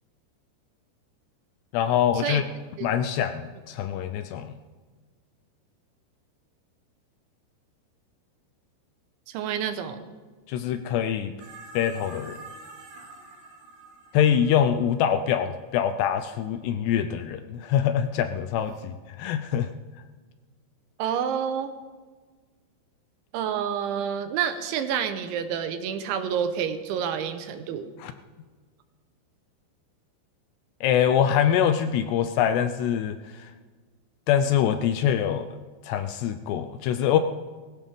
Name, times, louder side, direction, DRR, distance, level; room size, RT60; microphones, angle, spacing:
voice 1, 1.7-2.4 2.8-4.5 10.5-11.3 11.7-12.4 14.1-19.7 28.0-28.1 30.8-33.5 34.3-35.6 35.8-37.2, left 9 dB, 80° left, 8 dB, 2.5 m, -24 dB
voice 2, 9.3-10.0 21.0-21.7 23.3-27.9, right 8 dB, 85° right, 9 dB, 3.4 m, -28 dB
sound 1, 11.4-15.8 18.6-18.8, right 2 dB, 50° right, 2.6 m, -47 dB
18.5 x 16.5 x 3.6 m, 1.4 s
omnidirectional pair, 5.3 m